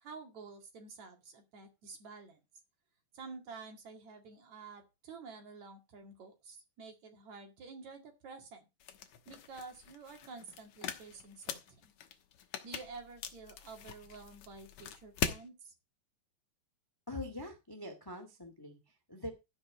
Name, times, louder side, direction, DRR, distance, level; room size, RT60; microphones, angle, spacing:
voice 1, 0.0-2.4 3.1-8.7 9.3-11.9 12.6-15.7, right 4 dB, 50° right, 4 dB, 2.9 m, -50 dB
sound 1, 8.8-15.4, left 9 dB, 65° left, 1.9 m, -42 dB
voice 2, 17.1-19.3, left 1 dB, 20° left, 6 dB, 0.6 m, -44 dB
15.5 x 5.6 x 4.9 m, 0.25 s
omnidirectional pair, 4.8 m